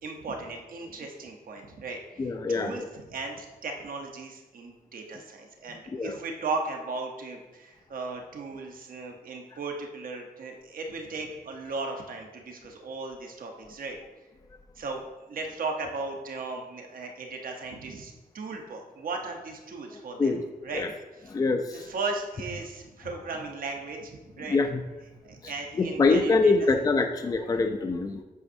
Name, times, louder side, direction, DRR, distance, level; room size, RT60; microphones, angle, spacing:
voice 1, 0.0-14.0 14.8-15.0 15.3-20.3 20.6-20.9 21.7-24.6 25.2-26.7, right 3 dB, 65° right, 2 dB, 0.9 m, -36 dB
voice 2, 2.2-2.9 5.9-6.2 20.2-20.4 20.7-20.9 21.3-21.9 24.5-24.8 25.4-28.2, left 3 dB, 25° left, 6 dB, 0.4 m, -25 dB
8.3 x 6.1 x 2.6 m, 1.1 s
wide cardioid pair, 165°, 16 cm